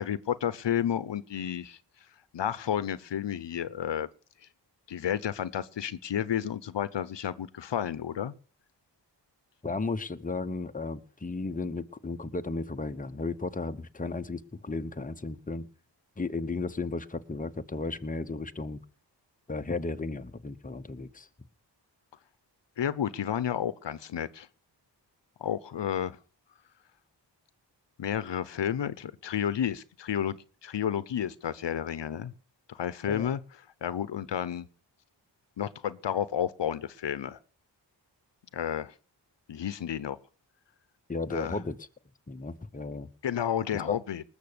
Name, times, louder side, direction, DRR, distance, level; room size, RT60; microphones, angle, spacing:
voice 1, 0.0-1.8 2.3-4.1 4.9-8.3 22.8-24.5 25.4-26.2 28.0-30.4 30.6-32.3 32.7-33.4 33.8-34.7 35.6-37.4 38.5-38.9 39.5-40.2 41.3-41.6 43.2-44.2, left 9 dB, 75° left, 0.9 m, -31 dB
voice 2, 9.6-15.7 16.2-18.8 19.5-21.3 33.1-33.3 41.1-41.8 42.3-43.1 43.7-44.0, left 3 dB, 20° left, 1.0 m, -34 dB
19.5 x 7.1 x 6.8 m
cardioid pair, 65°, 43 cm